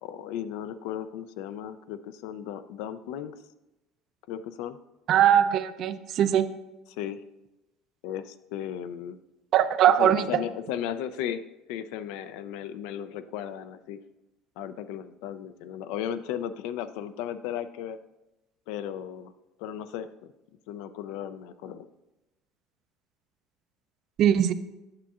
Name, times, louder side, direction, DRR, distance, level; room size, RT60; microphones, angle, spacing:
voice 1, 0.0-3.3 4.3-4.8 7.0-7.2 8.0-9.2 10.0-11.4 11.7-14.0 14.6-18.0 18.7-19.3 19.6-20.3 20.7-21.9, left 10 dB, 80° left, 12 dB, 0.4 m, -35 dB
voice 2, 5.1-6.5 9.5-10.3 24.2-24.5, right 10 dB, 55° right, 12 dB, 0.4 m, -21 dB
8.6 x 7.0 x 2.4 m, 0.99 s
supercardioid pair, 90°, 0 cm